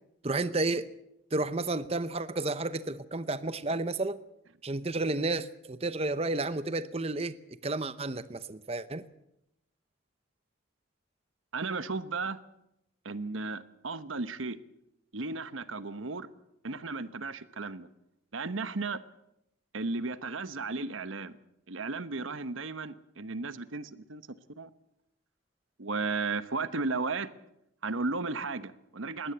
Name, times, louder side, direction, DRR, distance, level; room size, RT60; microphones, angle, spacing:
voice 1, 0.2-0.9 1.3-4.2 4.6-7.4 7.6-9.0, right 2 dB, 30° right, 0.7 m, -31 dB
voice 2, 11.5-12.4 13.0-14.6 15.1-16.3 16.6-17.9 18.3-19.0 19.7-21.4 21.7-24.7 25.8-27.3 27.8-29.3, right 3 dB, 90° right, 1.1 m, -34 dB
21.0 x 17.0 x 8.0 m
head